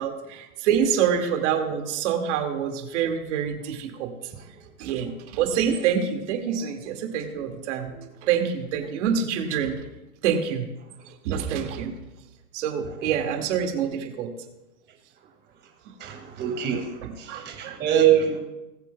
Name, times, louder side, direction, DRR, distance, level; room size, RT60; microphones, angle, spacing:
voice 1, 0.0-4.1 4.8-9.8 10.2-10.7 11.2-11.9 12.5-14.3 17.0-17.8, right 8 dB, 55° right, 3 dB, 2.1 m, -26 dB
voice 2, 16.0-18.4, right 9 dB, 25° right, 4 dB, 1.9 m, -24 dB
19.5 x 7.4 x 2.3 m, 0.97 s
hypercardioid pair, 135°, 43 cm